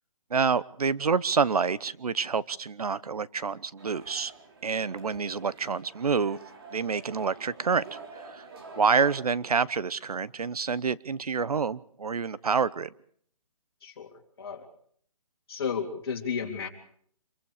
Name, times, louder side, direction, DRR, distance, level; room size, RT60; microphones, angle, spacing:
voice 1, 0.3-4.3 4.6-6.4 6.7-8.4 8.8-12.9, right 5 dB, 85° right, 18 dB, 1.0 m, -27 dB
sound 1, 3.8-9.2, right 3 dB, 40° right, 4.1 m, -48 dB
voice 2, 13.8-14.7 15.5-16.7, left 6 dB, 40° left, 1 dB, 3.5 m, -34 dB
27.0 x 23.0 x 5.0 m, 0.63 s
hypercardioid pair, 170°, 19 cm